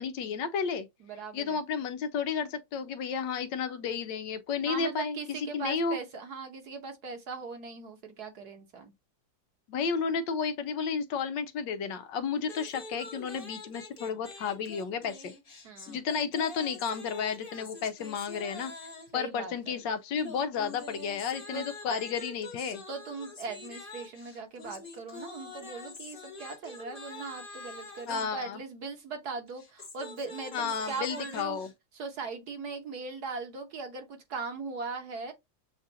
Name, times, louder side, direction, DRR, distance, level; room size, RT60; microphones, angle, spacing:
voice 1, 0.0-0.9 1.3-6.0 9.7-15.3 15.9-18.7 19.1-22.8 28.1-28.6 30.5-31.7, left 6 dB, 75° left, 1.3 m, -32 dB
voice 2, 1.0-1.6 4.7-8.9 15.6-16.0 19.1-19.8 21.5-21.7 22.9-31.6 31.9-35.3, right 4 dB, 60° right, 1.5 m, -39 dB
sound 1, 12.4-19.2 20.2-28.3 29.5-31.7, left 3 dB, 30° left, 1.2 m, -45 dB
7.3 x 2.4 x 2.7 m
omnidirectional pair, 2.1 m